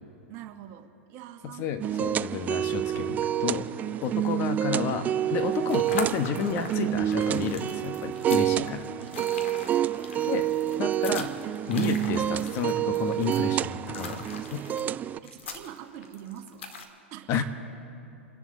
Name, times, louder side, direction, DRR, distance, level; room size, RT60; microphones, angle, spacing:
voice 1, 0.3-2.3 4.0-4.4 8.2-8.5 11.5-11.9 15.2-16.7 17.1-17.3, right 11 dB, 40° right, 5 dB, 1.6 m, -45 dB
voice 2, 1.6-3.6 4.0-8.8 10.3-10.5 10.8-11.3 11.7-14.6 17.3-17.4, left 6 dB, 40° left, 7 dB, 1.4 m, -31 dB
sound 1, 1.8-15.2, right 11 dB, 25° right, 0.4 m, -28 dB
sound 2, 5.3-16.9, left 4 dB, 75° left, 1.9 m, -41 dB
29.5 x 11.0 x 4.0 m, 2.6 s
hypercardioid pair, 105°, 7 cm